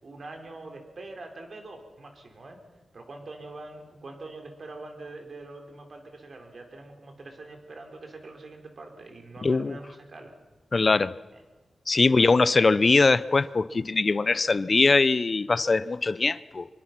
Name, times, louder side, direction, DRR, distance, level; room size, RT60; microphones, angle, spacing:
voice 1, 0.0-2.6 2.9-10.3 11.9-12.4, right 2 dB, 55° right, 4 dB, 4.3 m, -44 dB
voice 2, 9.4-9.8 10.7-11.1 11.9-16.7, left 3 dB, 40° left, 17 dB, 0.7 m, -22 dB
25.0 x 23.5 x 6.1 m, 1.2 s
wide cardioid pair, 90°, 0 cm